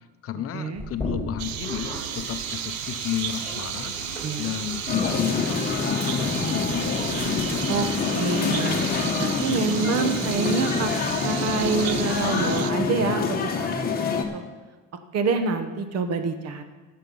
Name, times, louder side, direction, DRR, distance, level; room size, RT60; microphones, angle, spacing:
voice 1, 0.0-3.9 4.4-6.7, left 11 dB, 40° left, 11 dB, 0.7 m, -32 dB
Sink (filling or washing), 0.8-12.8, left 1 dB, 5° left, 2.8 m, -38 dB
sound 1, 1.4-12.7, right 12 dB, 80° right, 0.7 m, -34 dB
voice 2, 4.2-4.6 7.7-10.9 11.2-13.7 14.3-14.4 15.1-16.6, right 4 dB, 45° right, 8 dB, 1.1 m, -27 dB
sound 2, 4.9-14.2, left 5 dB, 25° left, 1.1 m, -26 dB
16.0 x 6.8 x 5.4 m, 1.3 s
cardioid pair, 170°, 34 cm